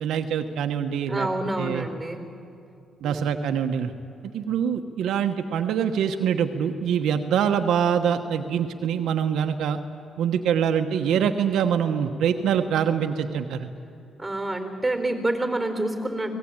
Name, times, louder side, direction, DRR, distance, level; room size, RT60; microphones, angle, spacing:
voice 1, 0.0-1.3 1.6-1.9 3.0-3.9 4.3-9.8 10.2-13.7, right 8 dB, 80° right, 6 dB, 1.1 m, -24 dB
voice 2, 1.1-2.2 3.0-3.4 14.2-16.3, right 1 dB, 10° right, 6 dB, 4.1 m, -28 dB
25.0 x 18.5 x 8.9 m, 2.5 s
cardioid pair, 90°, 0 cm